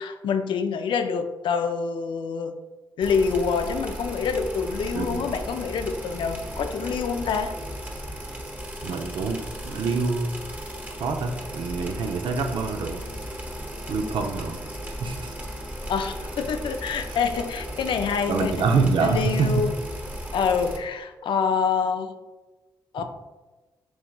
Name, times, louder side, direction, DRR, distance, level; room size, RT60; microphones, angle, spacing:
voice 1, 0.0-2.5 3.0-7.5 15.9-18.5 19.0-19.7 20.3-22.1 22.9-23.0, left 6 dB, 70° left, 7 dB, 0.5 m, -26 dB
sound 1, 3.0-20.8, equal, 20° right, 1.1 m, -36 dB
voice 2, 8.8-9.4 9.6-10.4 11.0-13.0 13.9-14.6 15.0-15.3 18.3-19.6 23.0-23.1, right 4 dB, 70° right, 5 dB, 0.6 m, -25 dB
6.2 x 3.5 x 2.3 m, 1.2 s
supercardioid pair, 50°, 9 cm